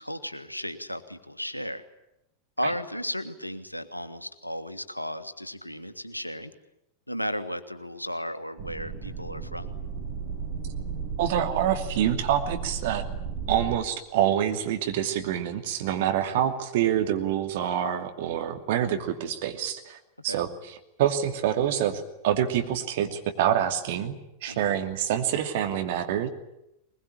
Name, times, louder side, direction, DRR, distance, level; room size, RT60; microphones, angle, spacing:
voice 1, 0.0-1.8 2.6-6.5 7.1-9.7 16.2-16.4 20.2-20.4 24.5-24.8, equal, 90° left, 11 dB, 1.6 m, -34 dB
sound 1, 8.6-13.8, right 6 dB, 35° right, 6.5 m, -34 dB
voice 2, 11.2-13.0 13.5-20.0 20.2-26.3, right 10 dB, 55° right, 6 dB, 2.6 m, -26 dB
21.5 x 21.0 x 10.0 m, 0.84 s
figure-of-eight pair, 90°, 0 cm